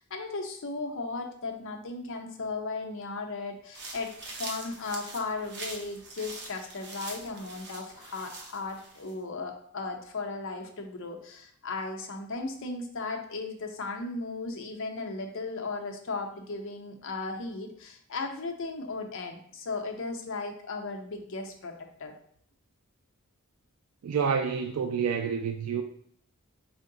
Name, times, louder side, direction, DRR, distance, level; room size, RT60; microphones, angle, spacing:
voice 1, 0.0-21.7 22.0-22.1, left 3 dB, 60° left, 0.6 m, -36 dB
sound 1, 3.7-9.1, right 2 dB, 55° right, 0.8 m, -43 dB
voice 2, 24.0-25.8, right 6 dB, 90° right, 0.3 m, -28 dB
4.5 x 2.1 x 3.7 m
head